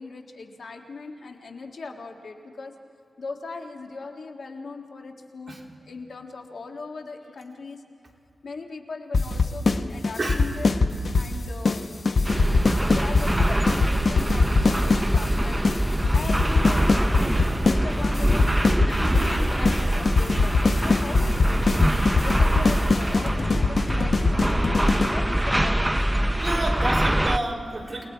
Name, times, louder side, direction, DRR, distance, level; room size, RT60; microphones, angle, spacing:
voice 1, 0.0-2.7 3.2-7.8 8.4-11.9 12.8-15.6 16.1-17.3 17.6-18.5 18.8-24.8 25.1-26.0, left 4 dB, 70° left, 3 dB, 1.7 m, -38 dB
sound 1, 9.1-9.8 10.0-11.3 11.6-11.8 12.1-15.3 15.6-15.8 16.0-17.8 18.0-19.3 19.6-19.8 20.1-25.1, left 4 dB, 55° left, 0.9 m, -21 dB
sound 2, 12.2-27.4, right 1 dB, 10° right, 0.5 m, -24 dB
voice 2, 26.4-28.0, right 2 dB, 35° right, -2 dB, 3.6 m, -29 dB
29.0 x 19.5 x 4.6 m, 2.7 s
wide cardioid pair, 100°, 0 cm